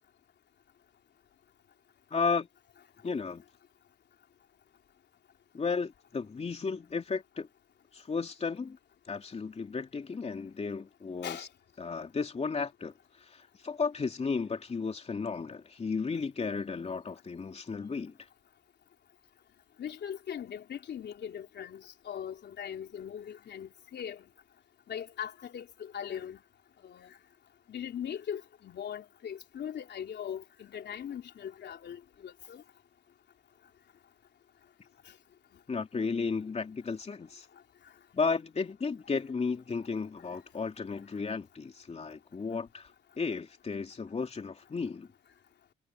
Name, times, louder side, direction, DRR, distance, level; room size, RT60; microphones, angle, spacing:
voice 1, 2.1-2.5 3.0-3.4 5.5-7.5 7.9-8.8 9.1-11.5 11.8-18.2 35.7-37.5 38.1-42.9 43.2-45.1, left 4 dB, 35° left, 3.0 m, -34 dB
voice 2, 19.8-24.2 24.9-26.4 26.8-27.1 27.7-32.6, left 9 dB, 60° left, 3.5 m, -40 dB
cardioid pair, 90°, 20 cm